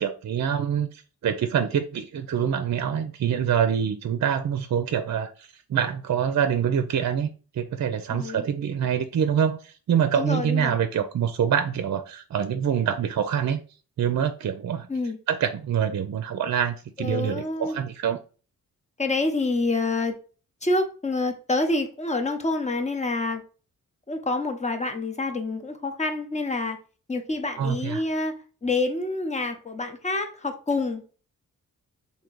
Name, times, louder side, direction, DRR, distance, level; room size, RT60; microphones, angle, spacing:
voice 1, 0.0-7.3 7.5-13.6 14.0-14.9 15.3-18.2 27.6-28.0, right 8 dB, 50° right, 0.5 m, -25 dB
voice 2, 8.1-8.4 10.1-10.8 14.9-15.2 17.0-17.8 19.0-20.2 20.6-23.4 24.1-26.8 27.1-28.4 28.6-31.0, left 2 dB, 20° left, 0.9 m, -27 dB
3.8 x 2.8 x 4.5 m
cardioid pair, 70°, 35 cm